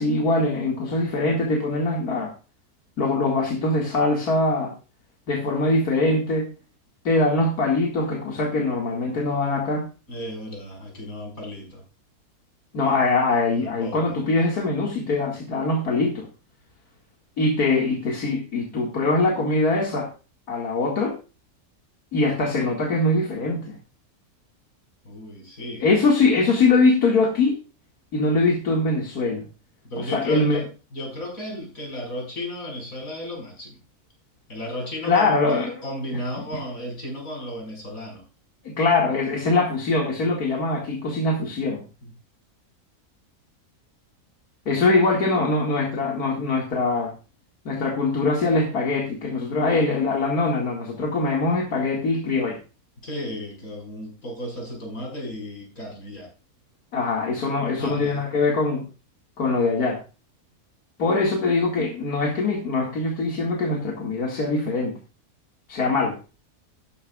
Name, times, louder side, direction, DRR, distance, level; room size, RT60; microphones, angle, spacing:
voice 1, 0.0-2.3 3.0-4.7 5.3-6.5 7.0-9.9 12.7-16.3 17.4-20.1 20.5-21.1 22.1-23.8 25.8-27.6 28.1-29.4 30.0-30.6 35.0-35.8 38.6-41.8 44.7-47.1 47.6-52.6 56.9-58.8 59.4-60.0 61.0-65.0 65.7-66.2, left 3 dB, 80° left, 0 dB, 2.6 m, -22 dB
voice 2, 10.1-11.8 13.6-14.2 25.0-25.9 29.9-33.8 34.5-38.2 42.0-42.1 53.0-56.3 57.8-58.2, equal, 60° left, 1 dB, 5.8 m, -34 dB
13.5 x 11.0 x 2.4 m, 0.33 s
omnidirectional pair, 1.6 m